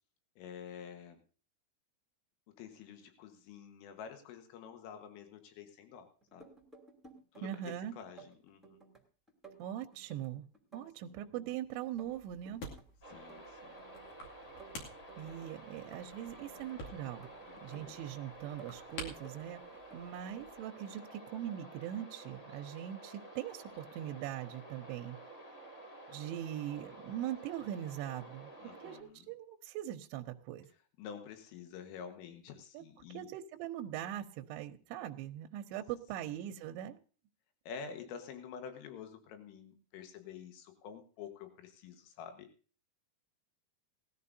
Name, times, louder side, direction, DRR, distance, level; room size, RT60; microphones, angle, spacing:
voice 1, 0.4-1.2 2.6-6.5 7.3-8.8 11.0-11.3 13.1-13.8 17.5-18.0 28.6-29.3 31.0-33.3 36.3-36.4 37.7-42.5, left 7 dB, 85° left, 6 dB, 4.0 m, -49 dB
sound 1, 6.2-7.7 8.0-9.0 9.3-11.6 11.8-12.8 13.1-14.2 14.4-16.7 17.0-18.1 18.4-19.5 19.7-20.1, right 4 dB, ahead, 0.9 m, -56 dB
voice 2, 7.4-7.9 9.6-10.5 10.7-12.6 15.2-17.3 17.6-19.6 19.9-25.2 26.1-30.7 32.7-32.8 33.1-37.0, right 11 dB, 80° right, 5 dB, 2.9 m, -41 dB
sound 2, 11.9-20.6, left 1 dB, 50° left, 3.4 m, -51 dB
sound 3, 13.0-29.0, right 2 dB, 20° left, 2.6 m, -52 dB
18.5 x 13.5 x 2.7 m, 0.38 s
omnidirectional pair, 5.6 m